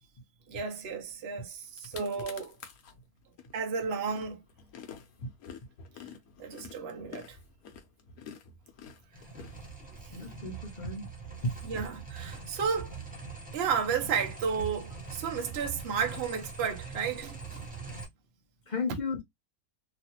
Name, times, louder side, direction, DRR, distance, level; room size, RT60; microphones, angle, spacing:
voice 1, 0.5-2.6 3.5-4.4 6.4-7.4 10.1-10.2 11.6-13.0 13.5-17.7, right 6 dB, 50° right, 0.8 m, -33 dB
sound 1, 1.3-1.4 1.6-2.9 3.4-10.1, left 7 dB, 65° left, 1.1 m, -48 dB
sound 2, 9.1-18.1, right 5 dB, 10° right, 0.6 m, -42 dB
voice 2, 10.1-11.1 11.4-11.5 18.7-19.2, left 3 dB, 50° left, 0.5 m, -33 dB
3.1 x 2.5 x 2.9 m
omnidirectional pair, 1.8 m